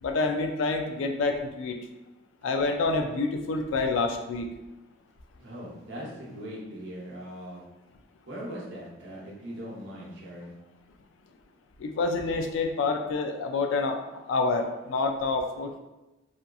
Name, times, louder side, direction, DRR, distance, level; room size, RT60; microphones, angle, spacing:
voice 1, 0.0-1.8 2.4-4.5 11.8-15.8, left 3 dB, 75° left, 5 dB, 0.3 m, -28 dB
voice 2, 5.4-7.6 8.3-10.5, equal, 65° right, -4 dB, 0.7 m, -40 dB
2.7 x 2.4 x 2.2 m, 1.0 s
head